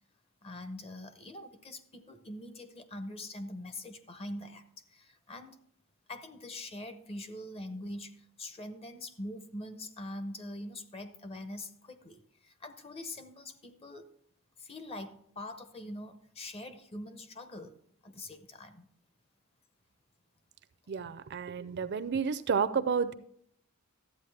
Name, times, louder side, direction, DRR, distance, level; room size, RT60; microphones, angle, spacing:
voice 1, 0.4-5.6 6.1-14.1 14.6-17.8 18.0-18.9, left 1 dB, 30° left, 10 dB, 0.7 m, -43 dB
voice 2, 20.9-23.1, right 6 dB, 55° right, 12 dB, 0.5 m, -30 dB
12.5 x 8.3 x 3.3 m, 0.65 s
head